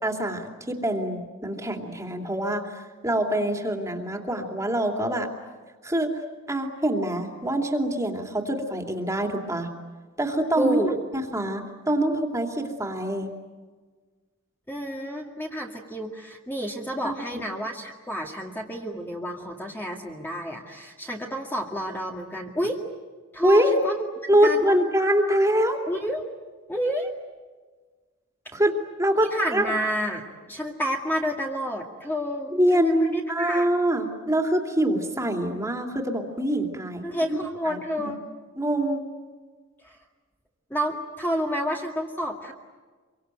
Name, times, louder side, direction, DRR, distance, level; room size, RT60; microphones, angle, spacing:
voice 1, 0.0-5.3 5.8-6.1 6.5-9.7 10.2-10.8 11.1-13.3 17.0-17.4 23.4-23.7 24.3-25.8 28.5-28.7 29.0-29.7 32.5-38.1 38.6-39.0, right 1 dB, 15° right, 3 dB, 2.8 m, -25 dB
voice 2, 10.6-11.0 14.7-22.8 23.3-24.1 24.4-24.8 25.9-26.2 26.7-27.1 29.3-33.7 37.0-38.2 39.8-40.0 40.7-42.5, equal, 10° left, -1 dB, 2.1 m, -30 dB
27.0 x 24.0 x 9.1 m, 1.4 s
head